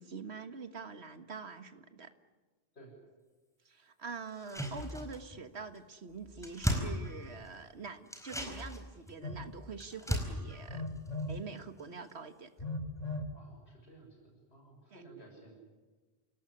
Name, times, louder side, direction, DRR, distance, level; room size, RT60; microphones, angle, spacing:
voice 1, 0.0-2.1 3.7-10.8 11.3-12.5 14.9-15.0, right 4 dB, 85° right, 9 dB, 1.8 m, -45 dB
sound 1, 4.3-5.5 5.7-5.8 6.1-7.6 8.1-11.8 12.1-12.2, equal, 5° left, 4.6 m, -37 dB
Telephone, 9.2-9.4 10.7-11.4 12.6-13.3, left 2 dB, 40° left, 2.1 m, -37 dB
voice 2, 13.3-15.5, right 2 dB, 80° left, 0 dB, 6.8 m, -55 dB
28.0 x 18.0 x 10.0 m, 1.3 s
omnidirectional pair, 1.1 m